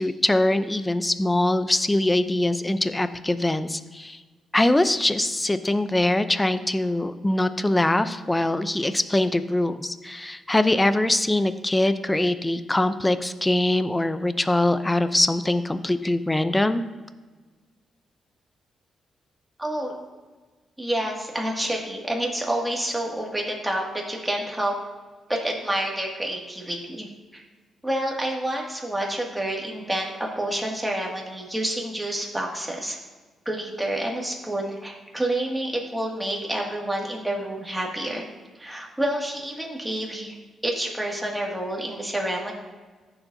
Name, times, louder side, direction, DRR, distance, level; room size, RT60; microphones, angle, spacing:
voice 1, 0.0-4.2 4.5-16.8, left 1 dB, 10° left, 11 dB, 0.5 m, -23 dB
voice 2, 19.6-20.0 20.8-24.7 25.3-27.1 27.3-27.4 27.8-33.0 33.5-38.3 38.6-40.4 40.6-42.5, right 1 dB, 5° right, -1 dB, 2.1 m, -28 dB
15.0 x 7.1 x 2.7 m, 1.3 s
cardioid pair, 110°, 0 cm